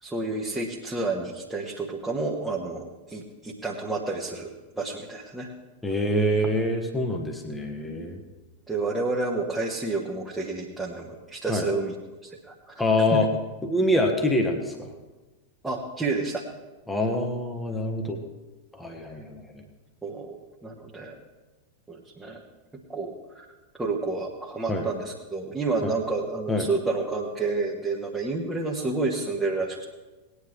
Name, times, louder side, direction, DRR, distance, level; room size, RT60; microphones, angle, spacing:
voice 1, 0.0-5.5 8.7-11.9 12.2-12.8 13.1-13.2 15.6-16.4 20.0-20.4 20.6-21.1 21.9-22.4 22.7-23.4 23.8-29.8, right 3 dB, 10° right, -3 dB, 1.5 m, -30 dB
voice 2, 5.8-8.2 11.5-11.7 12.8-13.3 13.6-14.9 16.9-18.2 18.7-19.6 24.7-24.9 25.8-25.9 26.5-26.7, left 1 dB, 5° left, 3 dB, 1.4 m, -25 dB
19.0 x 9.9 x 3.4 m, 1.2 s
figure-of-eight pair, 90°, 0 cm